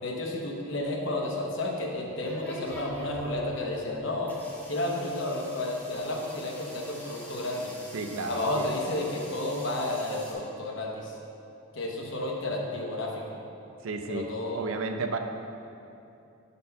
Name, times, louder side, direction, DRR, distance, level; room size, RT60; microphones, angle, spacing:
voice 1, 0.0-4.3 4.7-7.7 8.3-11.1 11.7-13.2 14.1-14.6, left 1 dB, 60° left, -1 dB, 0.8 m, -31 dB
sound 1, 1.4-10.3, left 1 dB, 10° left, 0.7 m, -46 dB
voice 2, 7.9-8.7 13.8-15.2, right 3 dB, 75° right, 6 dB, 0.4 m, -33 dB
5.5 x 4.2 x 5.4 m, 2.7 s
head